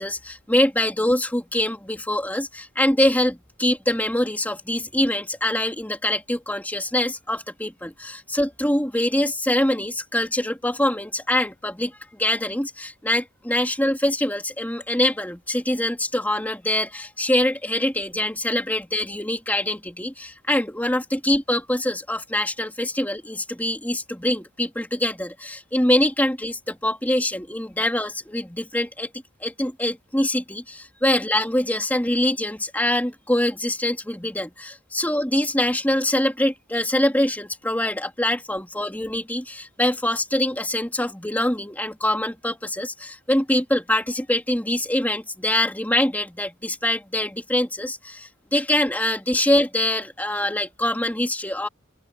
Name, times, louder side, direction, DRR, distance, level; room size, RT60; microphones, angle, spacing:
voice 1, 0.0-29.1 29.4-51.7, left 1 dB, 10° left, 2.9 m, -24 dB
open air
head